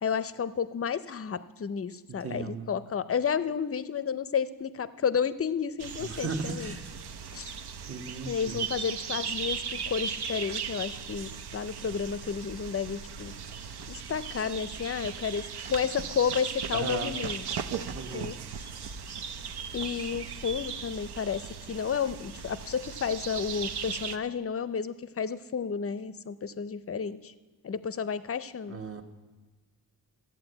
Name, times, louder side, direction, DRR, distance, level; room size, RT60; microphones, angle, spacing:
voice 1, 0.0-6.8 7.3-7.5 8.3-13.3 13.9-17.5 17.8-17.9 18.1-18.3 19.7-21.4 21.7-27.3 27.6-28.8, left 7 dB, 35° left, 14 dB, 0.5 m, -31 dB
voice 2, 2.1-2.7 6.0-6.8 7.9-8.7 16.7-17.2 17.9-18.3 28.7-29.0, right 4 dB, 35° right, 5 dB, 1.1 m, -36 dB
sound 1, 5.8-24.2, right 6 dB, 75° right, 0.7 m, -37 dB
13.5 x 8.6 x 7.9 m, 1.3 s
wide cardioid pair, 120°, 40 cm